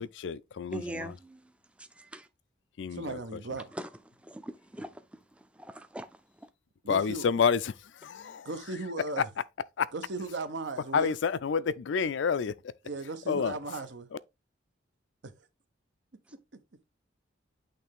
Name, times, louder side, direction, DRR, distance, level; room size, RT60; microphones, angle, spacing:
voice 1, 0.0-1.1 2.8-3.4 6.9-7.7 8.0-8.5 9.8-9.9 10.9-12.5 13.3-13.5, left 6 dB, 65° left, 0.4 m, -29 dB
voice 2, 0.7-1.4 1.8-2.3 3.8-3.9 4.2-5.0 5.6-6.1, equal, 5° right, 0.4 m, -41 dB
voice 3, 2.9-3.7 6.8-7.3 8.4-9.3 9.9-11.2 12.8-14.1 15.2-15.5, right 3 dB, 65° right, 0.8 m, -37 dB
8.5 x 3.2 x 3.5 m
head